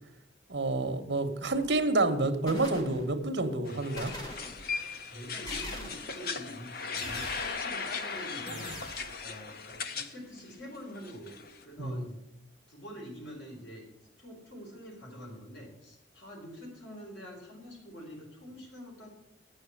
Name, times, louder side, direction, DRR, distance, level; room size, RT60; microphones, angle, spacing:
voice 1, 0.5-4.1 11.8-12.1, right 2 dB, 65° right, 8 dB, 1.1 m, -29 dB
sound 1, 1.6-1.9 2.5-3.4 4.0-4.9 5.5-6.3 7.0-7.8 8.5-9.2, equal, 20° left, 1.8 m, -43 dB
sound 2, 3.7-10.1 10.4-11.6, left 5 dB, 50° left, 0.7 m, -38 dB
voice 2, 5.1-8.8 9.2-12.2 12.7-13.9 14.2-19.1, equal, 75° left, -1 dB, 4.1 m, -46 dB
9.0 x 6.4 x 8.5 m, 0.85 s
head